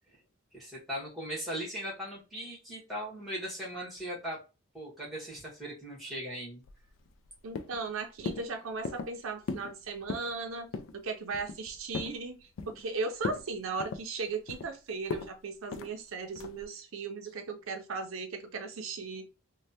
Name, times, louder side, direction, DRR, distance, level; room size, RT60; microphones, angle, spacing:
voice 1, 0.5-4.4 4.7-6.6, equal, ahead, -4 dB, 1.3 m, -39 dB
sound 1, 6.6-7.3 7.5-7.9 8.3-8.5 8.8-9.1 9.5-9.7 10.0-10.3 10.7-11.0 11.3-12.2 12.6-12.9 13.2-13.5 13.8-14.7 15.1-15.3 15.7-15.9 16.4-16.6, left 4 dB, 70° left, 0.4 m, -37 dB
voice 2, 7.4-12.4 12.7-19.3, right 4 dB, 80° right, 5 dB, 0.5 m, -37 dB
3.2 x 2.1 x 2.6 m, 0.31 s
head